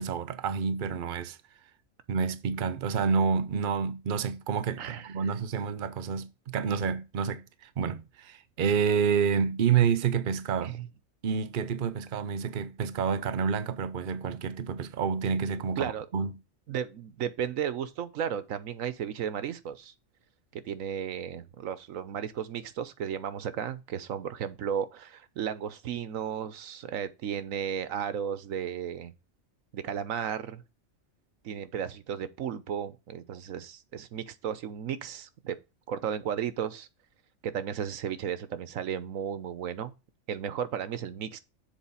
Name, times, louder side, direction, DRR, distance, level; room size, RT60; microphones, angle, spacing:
voice 1, 0.0-1.4 2.1-10.8 11.2-16.3, right 6 dB, 45° right, 0.9 m, -29 dB
voice 2, 4.8-5.1 10.6-10.9 15.8-16.1 16.7-19.9 20.5-29.1 29.7-30.6 31.4-35.6 35.9-36.9 37.4-39.9 40.3-41.4, right 8 dB, 85° right, 1.2 m, -34 dB
7.3 x 4.4 x 5.5 m
omnidirectional pair, 1.4 m